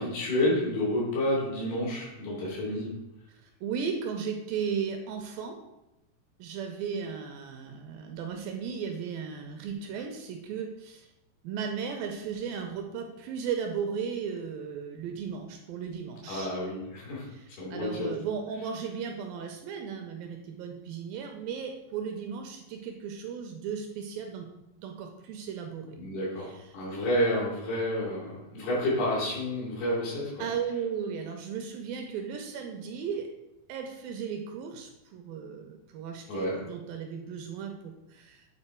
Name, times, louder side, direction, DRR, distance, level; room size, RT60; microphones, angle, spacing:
voice 1, 0.0-2.9 16.3-17.3 17.6-18.1 26.0-30.5 36.3-36.6, left 1 dB, 75° left, -5 dB, 4.5 m, -29 dB
voice 2, 3.6-5.6 6.4-11.1 11.4-16.5 17.3-24.5 24.8-26.0 26.4-26.7 30.4-33.3 33.7-38.5, right 6 dB, 80° right, 4 dB, 2.2 m, -36 dB
8.9 x 4.0 x 4.4 m, 0.91 s
omnidirectional pair, 4.5 m